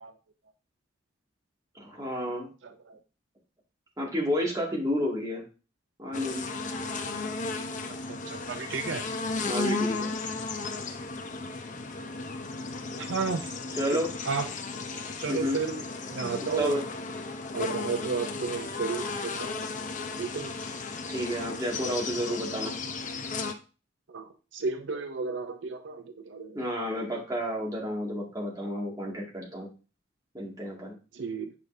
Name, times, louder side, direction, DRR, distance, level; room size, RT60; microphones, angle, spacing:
voice 1, 1.8-2.5 4.0-5.4 6.0-6.5 9.5-10.2 13.8-14.1 15.3-15.6 16.4-16.8 21.1-22.7 26.5-29.7 30.3-30.9, equal, 20° right, -3 dB, 2.1 m, -31 dB
voice 2, 2.6-3.0 8.3-9.0 13.0-13.5 14.3-14.5 15.2-15.8 16.1-16.8 17.5-19.6 20.2-20.5 24.1-26.6 31.1-31.5, right 4 dB, 75° right, 8 dB, 0.5 m, -33 dB
sound 1, 6.1-23.5, left 3 dB, 40° left, 0.7 m, -35 dB
8.3 x 5.3 x 2.6 m, 0.33 s
head